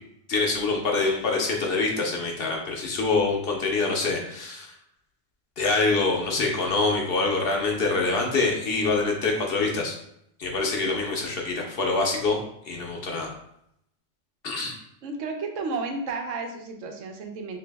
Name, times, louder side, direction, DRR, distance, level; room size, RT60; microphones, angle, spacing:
voice 1, 0.3-4.7 5.6-9.9 10.4-12.4 12.6-13.3 14.4-14.7, left 3 dB, 60° left, 0 dB, 0.7 m, -25 dB
voice 2, 15.0-17.6, right 3 dB, 80° right, 4 dB, 0.9 m, -32 dB
2.9 x 2.6 x 3.3 m, 0.76 s
omnidirectional pair, 1.3 m